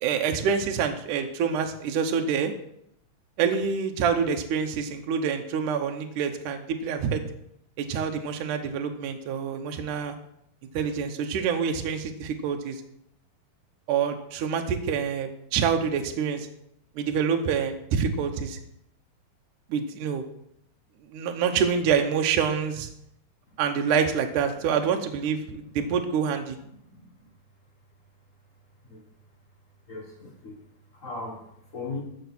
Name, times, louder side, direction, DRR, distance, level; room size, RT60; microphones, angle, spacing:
voice 1, 0.0-2.5 3.4-7.2 7.8-10.1 10.7-12.8 13.9-16.5 17.0-18.6 19.7-20.3 21.1-22.9 23.6-26.6, right 7 dB, 70° right, 4 dB, 2.2 m, -26 dB
voice 2, 26.6-27.3 28.8-29.1 29.9-30.6 30.9-32.0, left 3 dB, 75° left, 1 dB, 0.7 m, -39 dB
14.0 x 6.6 x 6.0 m, 0.75 s
omnidirectional pair, 4.1 m